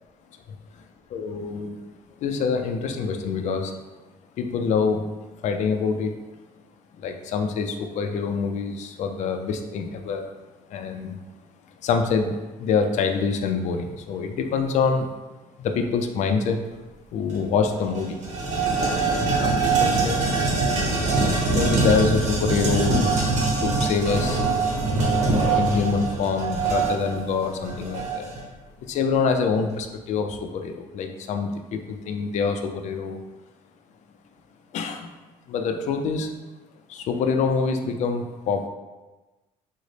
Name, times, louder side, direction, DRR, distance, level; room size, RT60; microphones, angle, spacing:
voice 1, 1.1-1.8 2.2-3.7 4.4-5.1 5.4-6.2 7.0-10.3 10.7-11.2 11.8-15.1 15.6-16.6 17.1-18.2 19.4-20.3 21.2-23.1 23.6-24.4 25.5-28.3 28.9-33.2 34.7-35.1 35.5-36.3 36.9-38.7, left 5 dB, 60° left, 6 dB, 0.4 m, -25 dB
sound 1, 17.3-17.4 17.7-28.4, right 3 dB, 60° right, 1.0 m, -23 dB
3.8 x 2.1 x 3.2 m, 1.2 s
cardioid pair, 110°, 14 cm